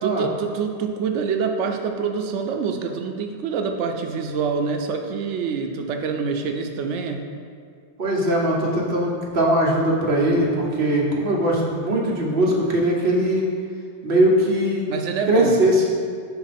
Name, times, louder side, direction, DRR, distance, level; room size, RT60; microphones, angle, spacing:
voice 1, 0.0-7.2 14.9-15.6, right 5 dB, 80° right, 4 dB, 0.9 m, -26 dB
voice 2, 8.0-13.4 14.0-14.9 15.3-16.0, right 1 dB, 55° right, -4 dB, 1.2 m, -20 dB
5.4 x 4.6 x 4.1 m, 2.1 s
omnidirectional pair, 1.2 m